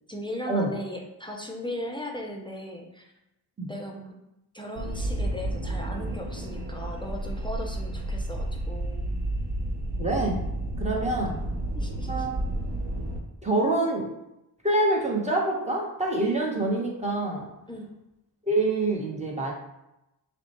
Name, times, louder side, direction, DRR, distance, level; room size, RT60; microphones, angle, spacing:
voice 1, 0.1-3.1 3.7-4.1 4.5-9.1 10.9-11.3 11.7-12.3 17.7-17.9, equal, 10° left, 0 dB, 0.5 m, -37 dB
sound 1, 4.7-13.2, right 1 dB, 75° right, 0.8 m, -31 dB
voice 2, 10.0-10.4 10.8-11.4 12.1-12.3 13.4-14.1 14.6-17.5 18.5-19.5, right 2 dB, 15° right, -2 dB, 1.1 m, -26 dB
5.9 x 2.2 x 3.0 m, 0.90 s
cardioid pair, 70°, 42 cm